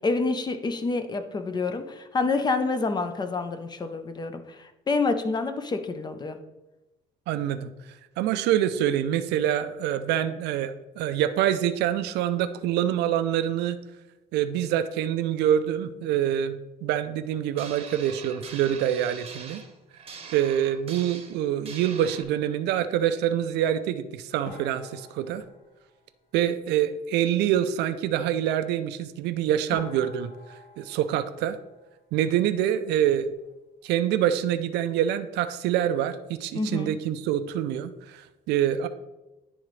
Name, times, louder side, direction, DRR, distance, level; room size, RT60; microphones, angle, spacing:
voice 1, 0.0-6.4 36.5-37.0, left 3 dB, 25° left, 8 dB, 0.6 m, -28 dB
voice 2, 7.3-7.7 8.2-13.8 14.3-19.6 20.3-25.4 26.3-30.3 30.8-31.6 32.1-33.3 33.8-38.9, right 10 dB, 80° right, 11 dB, 0.4 m, -26 dB
sound 1, 17.5-22.2, right 5 dB, 35° right, 0.9 m, -43 dB
sound 2, 24.4-26.9 29.2-29.3 29.7-32.5 32.7-33.5 33.8-34.0 34.3-34.4 35.0-35.4, left 4 dB, 85° left, 1.7 m, -47 dB
10.0 x 3.8 x 3.2 m, 1.0 s
cardioid pair, 110°, 17 cm